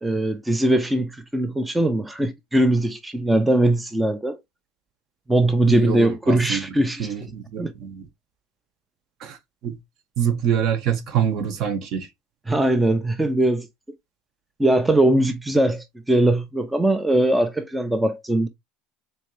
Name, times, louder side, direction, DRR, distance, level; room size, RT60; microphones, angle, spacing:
voice 1, 0.0-4.4 5.3-7.1 7.6-7.7 12.5-13.7 14.6-18.5, right 1 dB, 5° right, 0.4 m, -21 dB
voice 2, 5.7-6.6 7.0-8.0 9.2-9.4 9.6-9.8 10.2-12.1, right 8 dB, 45° right, 0.9 m, -25 dB
3.9 x 3.1 x 3.0 m
cardioid pair, 150°, 0 cm